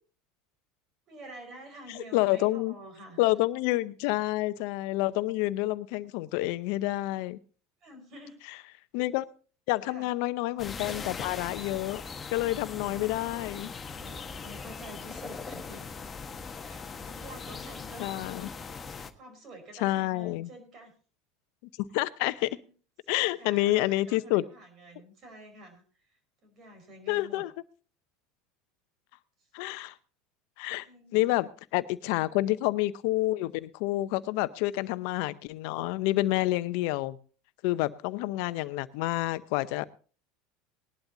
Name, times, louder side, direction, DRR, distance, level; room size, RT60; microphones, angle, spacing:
voice 1, 1.1-3.2 4.0-4.2 7.8-8.4 9.9-10.1 12.7-13.0 14.0-15.8 16.6-18.5 18.8-20.9 22.6-22.7 23.0-27.4 30.8-31.5 32.3-32.4 38.6-38.7, right 1 dB, 50° right, 7 dB, 5.0 m, -49 dB
voice 2, 2.1-2.7 3.2-7.4 8.9-9.3 9.7-12.0 12.3-13.7 18.0-18.5 19.8-20.5 21.8-22.6 23.1-24.4 27.1-27.5 29.5-29.9 30.6-30.9 31.1-37.2 37.6-39.8, left 18 dB, 70° left, 15 dB, 0.7 m, -28 dB
sound 1, 10.6-19.1, left 5 dB, 25° left, 1.2 m, -40 dB
19.0 x 11.5 x 2.7 m, 0.37 s
hypercardioid pair, 90°, 0 cm